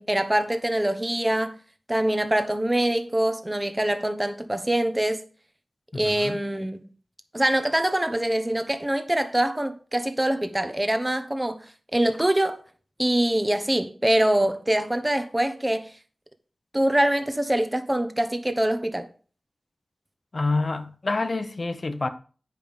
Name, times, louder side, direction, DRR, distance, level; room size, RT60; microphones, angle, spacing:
voice 1, 0.0-1.6 1.9-5.2 5.9-6.9 7.3-11.6 11.9-12.6 13.0-15.9 16.7-19.1, right 1 dB, 15° right, 1.0 m, -24 dB
voice 2, 5.9-6.4 20.3-22.1, left 3 dB, 50° left, 0.9 m, -27 dB
9.3 x 5.3 x 5.2 m
wide cardioid pair, 95°, 0 cm